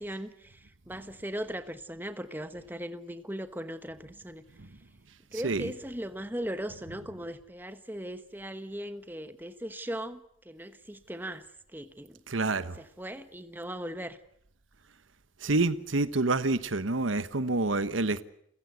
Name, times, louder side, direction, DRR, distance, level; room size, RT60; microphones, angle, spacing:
voice 1, 0.0-4.4 5.3-11.4 11.7-12.2 12.8-14.2, equal, 10° right, 1.1 m, -38 dB
voice 2, 5.3-5.7 12.3-12.8 15.4-18.2, right 2 dB, 90° right, 1.2 m, -28 dB
29.0 x 16.0 x 8.2 m
head